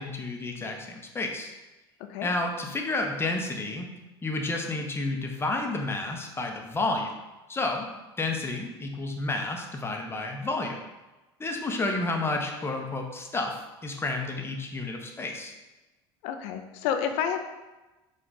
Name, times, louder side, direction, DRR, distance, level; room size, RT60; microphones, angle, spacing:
voice 1, 0.0-1.5 2.2-3.9 4.2-7.1 7.5-7.9 8.2-10.8 11.4-15.5, left 2 dB, 20° left, 3 dB, 0.7 m, -30 dB
voice 2, 16.2-17.4, left 8 dB, 60° left, 7 dB, 0.5 m, -29 dB
4.5 x 2.5 x 3.9 m, 1.1 s
hypercardioid pair, 75°, 13 cm